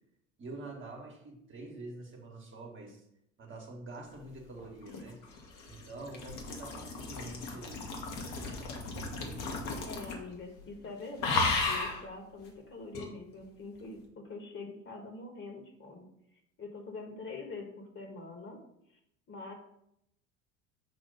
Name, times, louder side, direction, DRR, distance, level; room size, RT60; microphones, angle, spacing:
voice 1, 0.4-3.0 3.4-5.2 5.6-7.8, right 2 dB, 30° right, 0 dB, 1.4 m, -46 dB
sound 1, 4.6-10.3 10.6-10.9 11.2-12.0 12.9-13.1, left 3 dB, 55° left, 1.4 m, -34 dB
voice 2, 9.9-18.6 19.3-19.5, left 3 dB, 30° left, 2 dB, 1.5 m, -44 dB
6.2 x 2.8 x 5.4 m, 0.76 s
hypercardioid pair, 75°, 37 cm